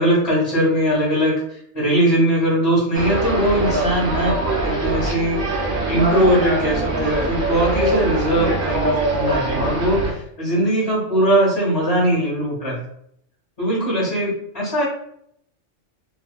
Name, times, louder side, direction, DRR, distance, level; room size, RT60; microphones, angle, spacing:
voice 1, 0.0-5.4 5.9-12.8 13.6-14.9, right 1 dB, 25° left, -7 dB, 1.0 m, -20 dB
sound 1, 2.9-10.1, right 1 dB, 60° right, 0.7 m, -23 dB
2.5 x 2.4 x 2.3 m, 0.70 s
omnidirectional pair, 1.2 m